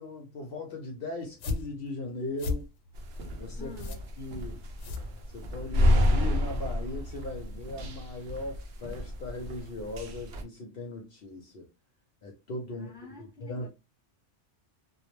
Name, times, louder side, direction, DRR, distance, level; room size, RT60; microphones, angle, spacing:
voice 1, 0.0-2.7 3.4-4.6 5.3-11.7 12.2-13.1 13.4-13.7, left 2 dB, 60° left, 0.7 m, -38 dB
sound 1, 1.2-5.7, left 3 dB, 90° left, 0.9 m, -37 dB
sound 2, 2.9-10.4, left 1 dB, 70° right, 0.8 m, -30 dB
voice 2, 3.6-4.0 12.7-13.7, left 3 dB, 5° right, 0.6 m, -47 dB
2.3 x 2.0 x 3.0 m
omnidirectional pair, 1.2 m